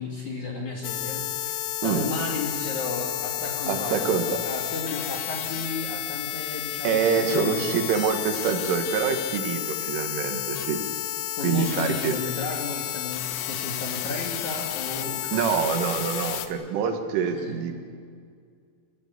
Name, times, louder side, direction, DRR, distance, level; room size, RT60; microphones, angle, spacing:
voice 1, 0.0-1.6 1.8-7.9 11.4-15.4 16.1-16.3 17.2-17.6, left 3 dB, 45° left, -1 dB, 3.1 m, -33 dB
sound 1, 0.8-16.5, left 13 dB, 85° left, 3.5 m, -31 dB
voice 2, 3.7-4.4 6.8-10.8 11.4-12.2 15.3-17.8, right 6 dB, 85° right, 6 dB, 4.2 m, -26 dB
30.0 x 15.0 x 8.3 m, 2.1 s
omnidirectional pair, 5.5 m